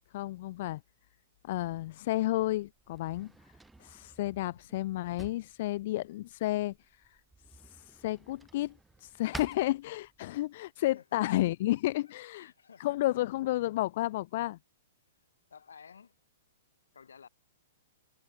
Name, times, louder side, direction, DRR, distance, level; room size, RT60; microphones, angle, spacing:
voice 1, 0.1-0.8 1.4-3.3 3.8-6.7 7.7-8.7 9.0-12.5 12.8-14.6, left 16 dB, 50° left, 0.5 m, -31 dB
Drawer open or close, 1.7-10.5, right 3 dB, 5° right, 4.7 m, -52 dB
voice 2, 4.4-4.8 10.9-11.2 12.0-13.0 13.9-14.0 15.5-16.2 16.9-17.3, left 6 dB, 75° left, 7.1 m, -55 dB
hypercardioid pair, 120°, 0 cm